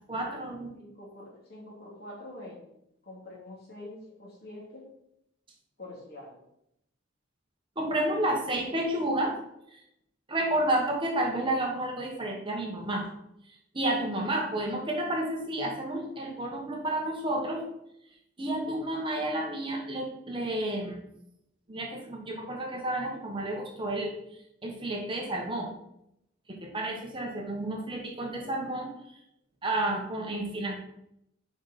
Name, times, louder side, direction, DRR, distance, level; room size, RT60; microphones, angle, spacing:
voice 1, 0.1-0.7 7.8-9.3 9.7-9.8 10.3-13.1 13.7-17.6 18.4-21.0 21.7-24.1 24.6-25.7 26.5-28.9 29.6-30.8, right 1 dB, 25° right, 0 dB, 1.3 m, -31 dB
voice 2, 0.7-2.6 3.0-4.9 5.8-6.4, left 1 dB, 55° left, -3 dB, 2.6 m, -45 dB
7.6 x 5.3 x 4.3 m, 0.79 s
head